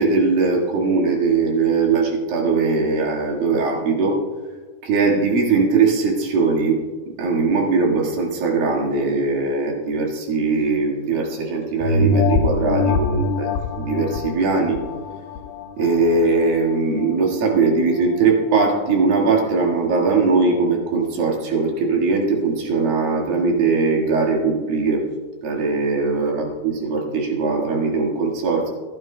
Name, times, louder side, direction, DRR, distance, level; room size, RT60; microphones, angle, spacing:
voice 1, 0.0-4.2 4.8-6.8 7.2-14.8 15.8-25.1 25.4-28.7, right 4 dB, 70° right, -1 dB, 3.4 m, -20 dB
sound 1, 11.8-16.7 17.2-17.3, left 3 dB, 85° left, 2.7 m, -23 dB
27.5 x 9.3 x 2.2 m, 1.4 s
omnidirectional pair, 4.5 m